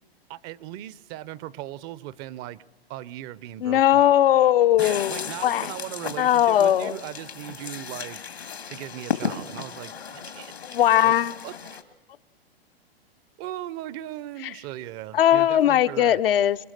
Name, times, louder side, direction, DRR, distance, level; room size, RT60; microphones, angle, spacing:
voice 1, 0.3-2.6 2.9-4.1 4.8-8.2 8.7-11.2 11.4-11.8 13.4-16.2, right 14 dB, 35° right, 20 dB, 0.7 m, -38 dB
voice 2, 3.6-5.7 6.2-6.9 10.6-11.4 14.4-14.5 15.1-16.6, left 11 dB, 65° left, 10 dB, 0.8 m, -19 dB
sound 1, 4.8-11.8, left 6 dB, 85° left, 2.5 m, -35 dB
26.0 x 22.5 x 6.6 m, 1.2 s
hypercardioid pair, 115°, 31 cm